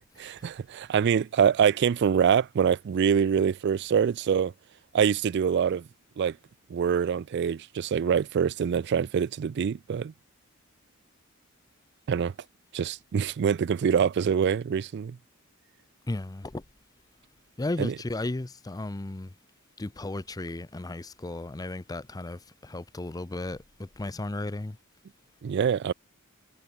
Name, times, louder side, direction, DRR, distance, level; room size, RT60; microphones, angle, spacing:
voice 1, 0.2-4.5 4.9-5.8 6.2-6.4 6.7-10.1 12.1-12.3 12.7-15.2 17.8-17.9 25.4-25.9, right 7 dB, 55° right, 0.3 m, -25 dB
voice 2, 16.1-16.6 17.6-19.3 19.8-24.8, left 2 dB, 20° left, 0.5 m, -35 dB
head